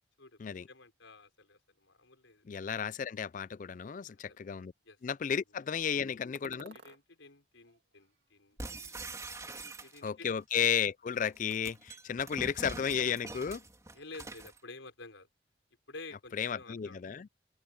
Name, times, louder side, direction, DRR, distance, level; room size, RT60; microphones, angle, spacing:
voice 1, 0.2-2.5 4.1-4.4 4.8-5.0 5.9-9.1 9.6-10.4 13.9-15.3 15.9-17.1, left 3 dB, 85° left, 5.4 m, -52 dB
voice 2, 2.5-4.7 5.0-6.8 10.0-13.6 16.4-17.3, left 7 dB, 40° left, 0.3 m, -33 dB
sound 1, 6.3-7.0 7.6-8.6 8.8-9.6, right 3 dB, 60° right, 2.6 m, -56 dB
sound 2, 8.6-10.3 11.3-14.6, right 2 dB, 15° right, 3.2 m, -44 dB
open air
head